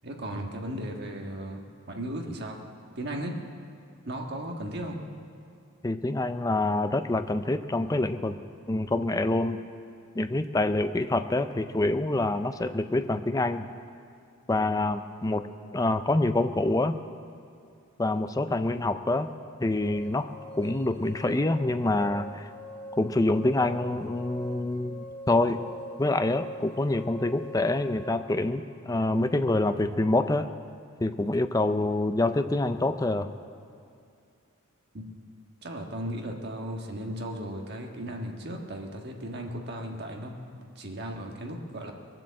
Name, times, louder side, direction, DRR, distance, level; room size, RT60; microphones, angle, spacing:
voice 1, 0.0-1.6 1.9-2.6 3.0-3.4 4.0-5.1 34.9-35.0 35.6-41.9, right 1 dB, 50° right, 2 dB, 1.5 m, -36 dB
voice 2, 5.8-8.4 8.7-9.6 10.2-13.7 14.5-15.5 15.7-16.9 18.0-19.3 19.6-20.3 20.6-22.5 23.0-25.6 26.0-30.5 31.0-33.3, left 2 dB, 15° left, 10 dB, 0.4 m, -26 dB
sound 1, 19.8-28.1, equal, 20° right, 3.5 m, -44 dB
21.5 x 7.6 x 7.6 m, 2.4 s
head